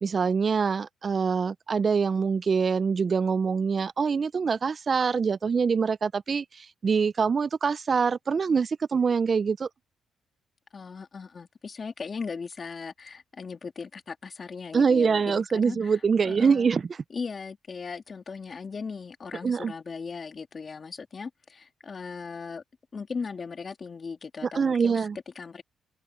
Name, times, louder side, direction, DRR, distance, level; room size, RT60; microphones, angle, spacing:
voice 1, 0.0-9.7 14.7-17.0 19.4-19.7 24.4-25.2, right 5 dB, 40° right, 0.4 m, -24 dB
voice 2, 10.7-16.0 16.2-16.7 17.1-22.6 22.9-25.1 25.4-25.6, left 5 dB, 40° left, 2.4 m, -38 dB
cardioid pair, 90°, 0 cm